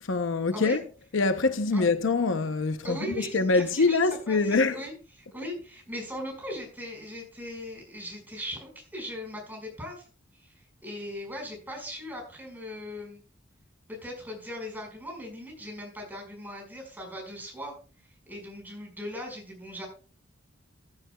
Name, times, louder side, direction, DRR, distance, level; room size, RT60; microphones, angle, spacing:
voice 1, 0.1-0.8 1.1-4.7, left 3 dB, 70° left, 0.7 m, -24 dB
voice 2, 2.8-10.0 10.3-10.5 10.8-13.2 13.9-17.7 18.2-19.9, equal, 10° right, 5.0 m, -39 dB
15.0 x 10.5 x 2.3 m
head